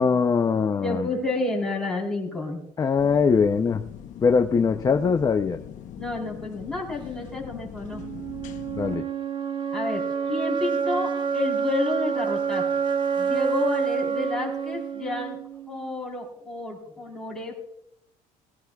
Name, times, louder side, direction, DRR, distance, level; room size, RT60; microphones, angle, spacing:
voice 1, 0.0-1.1 2.8-3.8 4.2-5.6 8.7-9.0, left 5 dB, 25° left, 5 dB, 0.6 m, -21 dB
voice 2, 0.8-2.6 6.0-8.0 9.7-12.8 13.2-15.4 15.7-17.7, left 3 dB, 5° left, -4 dB, 4.0 m, -30 dB
sound 1, 3.0-9.0, left 9 dB, 55° left, 0.9 m, -41 dB
sound 2, 7.9-15.9, right 6 dB, 30° right, 1.0 m, -28 dB
20.0 x 14.5 x 2.4 m, 0.77 s
cardioid pair, 140°, 16 cm